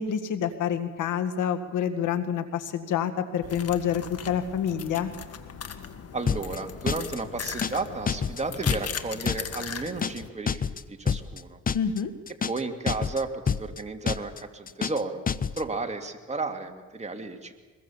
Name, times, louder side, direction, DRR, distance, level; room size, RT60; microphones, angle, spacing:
voice 1, 0.0-5.1 11.7-12.1, left 8 dB, 80° left, 9 dB, 1.9 m, -27 dB
sound 1, 3.4-10.3, left 7 dB, 55° left, 1.7 m, -38 dB
voice 2, 6.1-11.6 12.5-15.2 15.5-17.6, right 3 dB, 20° right, 4 dB, 2.5 m, -33 dB
sound 2, 6.3-6.6 6.9-7.2 7.5-7.8 8.1-8.4 8.7-9.0 9.3-9.6 9.9-10.2 10.5-10.8 11.1-11.4 11.7-12.0 12.3-12.6 12.9-13.2 13.5-13.8 14.1-14.4 14.7-15.0 15.3-15.6, left 6 dB, 30° left, 0.7 m, -27 dB
22.5 x 21.5 x 7.3 m, 1.3 s
cardioid pair, 90°, 30 cm